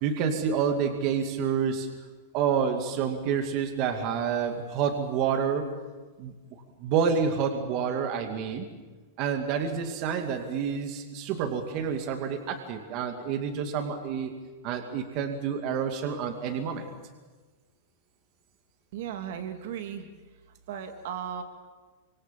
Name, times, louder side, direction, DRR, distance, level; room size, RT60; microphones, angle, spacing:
voice 1, 0.0-1.9 2.3-5.7 6.2-6.3 6.8-8.7 9.2-14.3 14.6-16.9, right 7 dB, 35° right, 5 dB, 2.4 m, -28 dB
voice 2, 18.9-20.1 20.7-21.4, right 9 dB, 60° right, 6 dB, 2.5 m, -36 dB
26.5 x 26.0 x 7.6 m, 1.3 s
supercardioid pair, 165°, 0 cm